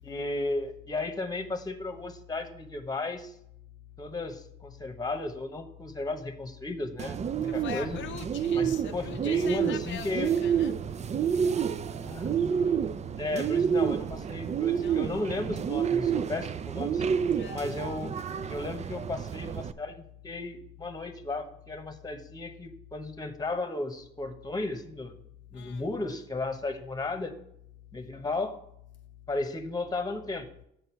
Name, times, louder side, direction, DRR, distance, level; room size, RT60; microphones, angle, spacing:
voice 1, 0.0-3.3 4.0-8.0 8.5-10.3 12.0-12.6 13.2-17.0 17.5-18.1 18.5-25.1 25.5-27.4 27.9-28.6 29.3-30.5, left 2 dB, 20° left, 1.1 m, -34 dB
Bird, 7.0-19.7, right 7 dB, 35° right, 0.4 m, -29 dB
voice 2, 7.5-10.8 14.7-15.0 17.3-17.7 25.5-25.8, left 10 dB, 70° left, 0.5 m, -42 dB
7.7 x 6.6 x 4.5 m
cardioid pair, 90°, 20 cm